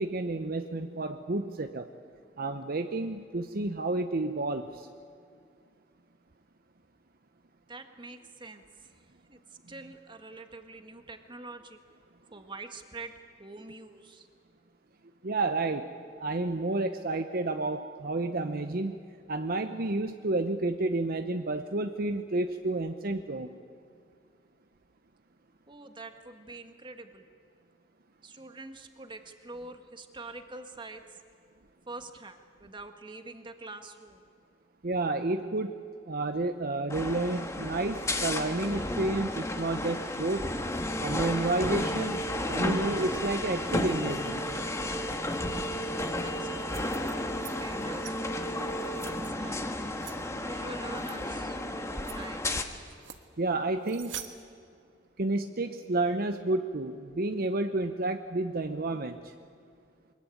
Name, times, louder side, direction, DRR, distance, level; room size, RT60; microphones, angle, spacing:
voice 1, 0.0-1.9 2.4-4.9 15.2-15.9 16.2-19.0 19.3-23.6 34.8-40.5 41.0-42.2 42.5-44.4 53.4-54.1 55.2-59.3, right 2 dB, 55° right, 7 dB, 0.8 m, -30 dB
voice 2, 7.7-8.6 8.9-9.0 9.3-9.4 9.7-11.8 12.3-13.1 13.4-14.3 25.7-27.2 28.2-31.0 31.9-34.2 46.2-46.9 47.2-49.7 50.4-52.5, right 2 dB, 25° right, 6 dB, 1.6 m, -45 dB
sound 1, 36.9-52.6, left 1 dB, 15° left, 1.4 m, -32 dB
sound 2, 46.5-47.5 47.8-48.1 48.7-49.3 50.0-50.2 51.0-51.1 51.6-51.7 52.0-52.2 52.9-53.2 53.8-54.3, right 10 dB, 90° right, 1.5 m, -44 dB
23.0 x 21.5 x 9.2 m, 2.3 s
head